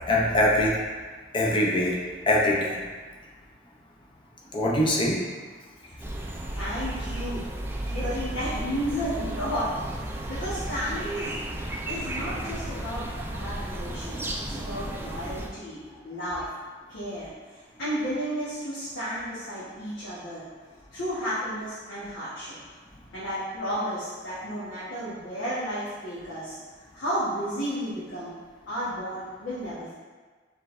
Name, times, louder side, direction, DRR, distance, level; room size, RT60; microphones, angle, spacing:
voice 1, 0.1-0.8 1.3-2.0 2.3-2.8 4.5-5.2, left 1 dB, 25° left, -3 dB, 0.7 m, -22 dB
sound 1, 6.0-15.5, right 1 dB, 10° right, 0.3 m, -34 dB
voice 2, 6.5-7.5 7.8-9.7 10.3-11.3 11.9-16.4 16.9-17.3 17.8-20.4 20.9-22.5 23.1-26.6 26.9-28.4 28.7-29.9, equal, 90° left, -12 dB, 1.3 m, -32 dB
5.0 x 3.6 x 2.6 m, 1.4 s
head